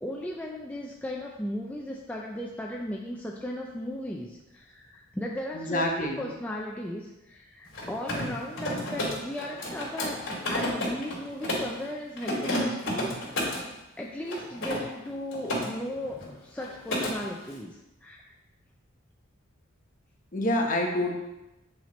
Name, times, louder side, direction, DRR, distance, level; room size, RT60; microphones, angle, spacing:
voice 1, 0.0-13.6 14.0-18.3, left 1 dB, 5° left, -2 dB, 0.4 m, -36 dB
voice 2, 5.5-6.3 20.3-21.1, left 1 dB, 40° left, 1 dB, 1.0 m, -27 dB
Mechanisms, 7.6-11.8 12.2-13.7 14.3-15.7 16.0-16.3 16.6-17.1, left 1 dB, 65° left, 2.3 m, -31 dB
8.5 x 4.3 x 3.1 m, 0.97 s
head